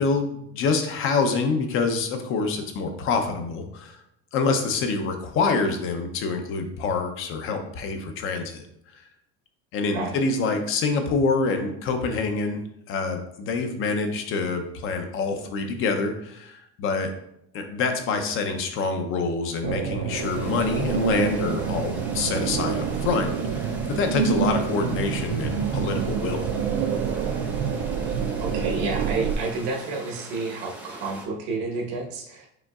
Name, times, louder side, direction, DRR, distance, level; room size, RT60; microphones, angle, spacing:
voice 1, 0.0-4.0 4.3-8.6 8.9-9.0 9.7-12.6 12.9-17.1 17.5-26.5, left 4 dB, 40° left, 6 dB, 0.6 m, -26 dB
sound 1, 19.6-29.4, right 7 dB, 50° right, 0.4 m, -27 dB
sound 2, 20.1-31.3, right 1 dB, 5° right, 0.7 m, -42 dB
voice 2, 28.4-32.5, right 3 dB, 75° right, 1 dB, 1.2 m, -30 dB
5.1 x 3.8 x 2.3 m, 0.74 s
cardioid pair, 155°, 32 cm